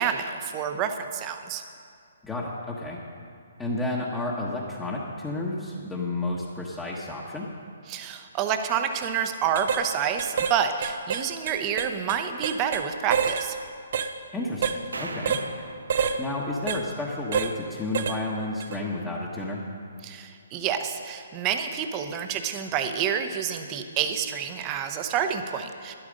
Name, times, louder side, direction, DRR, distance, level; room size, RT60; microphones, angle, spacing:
voice 1, 0.0-1.6 7.9-13.6 20.0-25.9, right 8 dB, 25° right, 7 dB, 0.9 m, -28 dB
voice 2, 2.2-3.0 3.6-7.5 14.3-15.4 16.2-19.6, left 2 dB, 10° left, -5 dB, 1.3 m, -31 dB
sound 1, 8.9-9.1 9.5-9.8 10.2-10.6 10.8-12.8 13.1-13.5 13.9-14.1 14.6-14.8 15.3-15.5 15.9-16.2 16.7-16.8 17.3-17.5 17.9-18.2 18.6-18.8, right 7 dB, 55° right, 0.8 m, -27 dB
sound 2, 14.9-17.3, right 3 dB, 90° right, 1.0 m, -40 dB
12.0 x 11.0 x 5.2 m, 2.3 s
hypercardioid pair, 140°, 0 cm